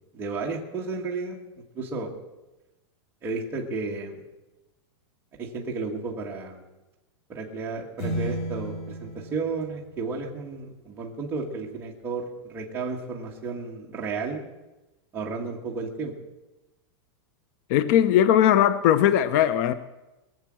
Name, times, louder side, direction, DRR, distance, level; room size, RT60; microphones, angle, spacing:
voice 1, 0.1-1.4 1.7-2.1 3.2-4.2 5.4-6.6 7.3-14.4 15.1-16.1, right 4 dB, 15° right, -3 dB, 1.6 m, -33 dB
sound 1, 8.0-10.6, right 1 dB, 70° left, 7.6 m, -34 dB
voice 2, 17.7-19.7, left 10 dB, 40° left, 14 dB, 0.6 m, -19 dB
22.0 x 7.4 x 7.5 m, 1.0 s
supercardioid pair, 165°, 14 cm